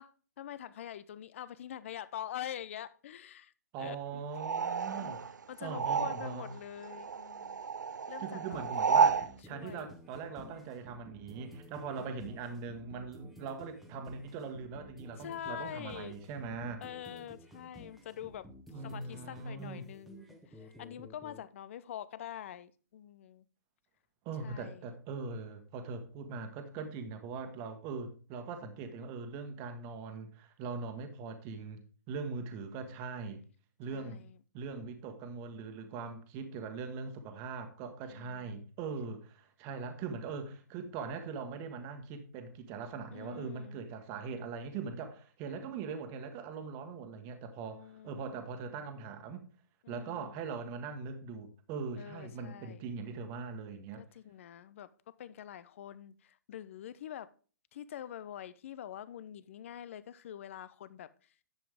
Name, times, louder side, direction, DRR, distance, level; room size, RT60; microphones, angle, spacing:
voice 1, 0.0-4.2 5.0-5.2 5.5-7.6 8.1-9.9 12.0-12.6 15.2-16.2 16.8-23.4 24.4-24.9 32.4-32.8 33.9-34.4 38.1-38.7 43.1-43.8 47.7-48.4 49.8-50.4 52.0-52.9 54.0-57.3 57.7-61.1, left 10 dB, 45° left, 0.6 m, -46 dB
voice 2, 3.7-5.2 5.6-6.5 8.2-16.8 18.7-19.9 24.2-31.8 32.1-33.4 33.8-34.2 34.5-49.5 49.9-54.0, right 5 dB, 25° right, 1.4 m, -41 dB
sound 1, 4.3-6.6 6.8-9.3, right 6 dB, 75° right, 0.4 m, -31 dB
sound 2, 8.5-21.4, equal, ahead, 1.2 m, -53 dB
10.5 x 7.7 x 3.5 m
figure-of-eight pair, 130°, 10 cm